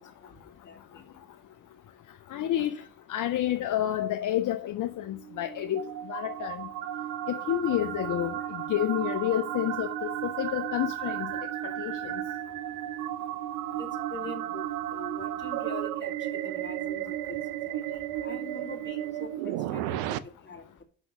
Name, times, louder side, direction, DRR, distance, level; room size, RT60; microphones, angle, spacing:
voice 1, 2.3-2.8 3.1-5.8 6.1-6.6 7.3-11.3 11.6-12.1, left 12 dB, 55° left, 0.8 m, -29 dB
sound 1, 5.1-20.2, right 12 dB, 75° right, 0.6 m, -34 dB
voice 2, 13.8-14.7 14.9-17.4 17.7-20.2 20.5-20.8, left 2 dB, 30° left, 2.0 m, -43 dB
6.1 x 5.9 x 6.4 m
hypercardioid pair, 55°, 37 cm